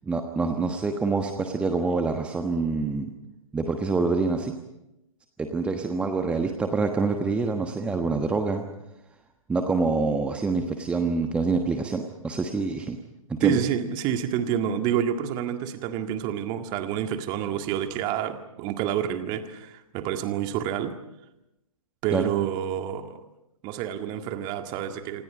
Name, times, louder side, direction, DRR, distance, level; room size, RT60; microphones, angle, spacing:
voice 1, 0.0-3.1 3.5-4.5 5.4-8.6 9.5-13.0 13.3-13.6 22.1-22.3, right 4 dB, 5° right, 5 dB, 1.2 m, -26 dB
voice 2, 13.4-21.0 22.0-23.2 23.6-25.2, right 9 dB, 25° right, 7 dB, 1.9 m, -28 dB
28.5 x 26.5 x 5.2 m, 0.88 s
figure-of-eight pair, 125°, 18 cm